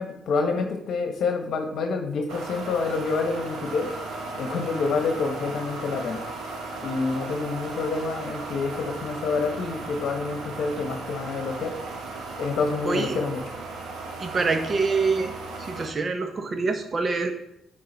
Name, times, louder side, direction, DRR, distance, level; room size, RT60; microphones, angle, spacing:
voice 1, 0.0-3.9 4.4-6.2 6.8-11.7 12.4-13.4, left 4 dB, 70° left, 4 dB, 1.1 m, -27 dB
sound 1, 2.3-15.9, right 3 dB, 80° right, 1.3 m, -36 dB
voice 2, 12.8-13.2 14.2-15.3 15.6-17.3, right 4 dB, 40° right, 6 dB, 1.0 m, -25 dB
10.0 x 3.9 x 3.9 m, 0.79 s
cardioid pair, 90°, 0 cm